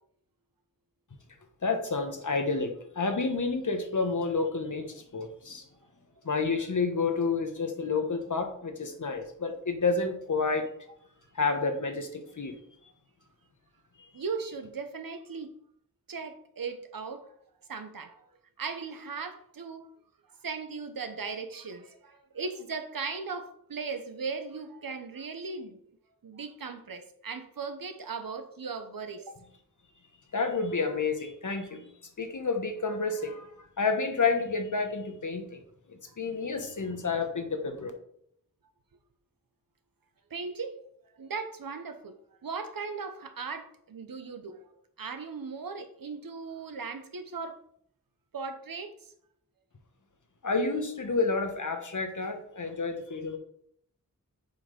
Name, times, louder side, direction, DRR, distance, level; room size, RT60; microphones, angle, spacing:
voice 1, 1.6-5.7 6.2-10.7 11.3-12.6 30.3-31.9 32.2-33.5 33.8-35.6 35.9-37.9 50.4-53.4, left 4 dB, 60° left, 6 dB, 1.3 m, -30 dB
voice 2, 14.1-15.5 16.1-17.3 17.7-19.9 20.4-25.8 26.2-29.4 40.3-40.8 41.2-42.1 42.4-44.7 45.0-47.6 48.3-49.1, right 5 dB, 80° right, 8 dB, 0.9 m, -38 dB
7.1 x 4.4 x 5.2 m, 0.69 s
wide cardioid pair, 65°, 34 cm